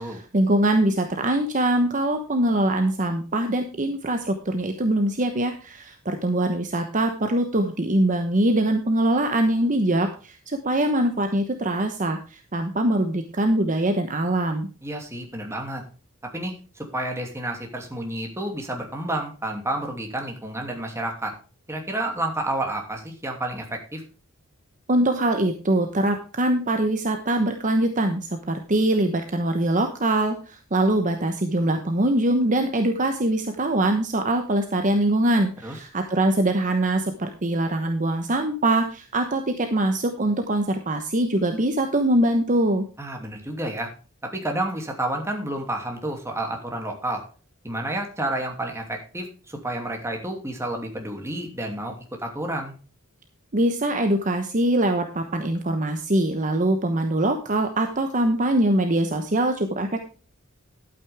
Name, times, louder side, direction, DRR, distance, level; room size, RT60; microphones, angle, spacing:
voice 1, 0.0-14.7 24.9-42.8 53.5-60.0, right 1 dB, 35° right, 6 dB, 1.0 m, -23 dB
voice 2, 14.8-15.8 16.3-21.3 21.7-24.0 35.6-35.8 43.0-43.9 44.3-47.2 47.6-52.7, right 1 dB, 15° right, 2 dB, 2.7 m, -30 dB
12.0 x 8.8 x 3.5 m, 0.36 s
head